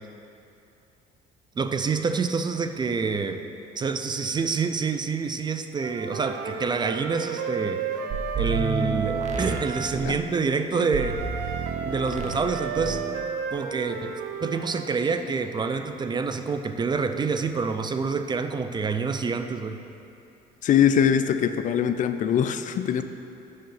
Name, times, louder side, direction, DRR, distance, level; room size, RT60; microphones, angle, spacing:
voice 1, 1.6-3.4 3.8-7.8 8.4-11.2 11.9-13.0 13.5-19.8, right 5 dB, 25° right, 8 dB, 0.4 m, -27 dB
Wind instrument woodwind instrument, 5.8-9.9 11.0-14.9, right 6 dB, 85° right, 0.6 m, -33 dB
sound 1, 8.1-10.2 10.9-12.5 12.7-13.1, right 4 dB, 45° right, 0.8 m, -30 dB
voice 2, 20.6-23.0, left 8 dB, 50° left, 10 dB, 0.4 m, -22 dB
6.4 x 5.6 x 7.0 m, 2.8 s
cardioid pair, 110°, 17 cm